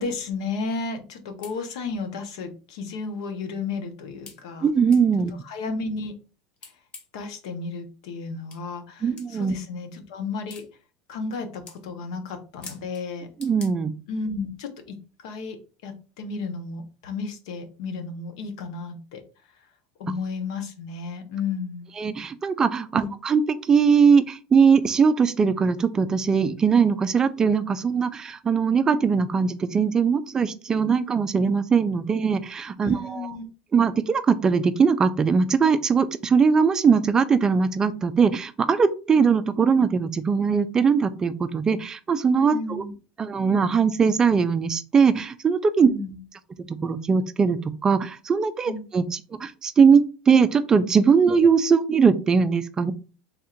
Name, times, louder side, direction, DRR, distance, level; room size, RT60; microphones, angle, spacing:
voice 1, 0.0-4.7 5.3-6.1 6.6-6.7 7.1-10.7 11.1-13.3 14.1-19.2 19.5-19.7 20.0-21.9 22.9-23.1 32.8-33.5 42.5-42.9 45.9-46.2 48.7-48.8, left 4 dB, 80° left, 7 dB, 0.9 m, -33 dB
sound 1, 1.1-1.2 1.4-1.6 2.4-2.5 3.0-3.1 4.3-4.4 4.9-5.0 6.6-7.2 8.5-8.6 9.2-9.3 10.5-10.7 11.2-11.4 11.7-11.8 12.6-13.0 13.4-13.7, left 4 dB, 30° left, 0.9 m, -44 dB
voice 2, 4.6-5.3 9.0-9.5 13.4-13.9 22.0-33.3 33.7-42.8 43.2-45.9 46.6-52.9, right 6 dB, 20° right, 13 dB, 0.3 m, -21 dB
3.5 x 2.5 x 4.3 m, 0.34 s
supercardioid pair, 145°, 3 cm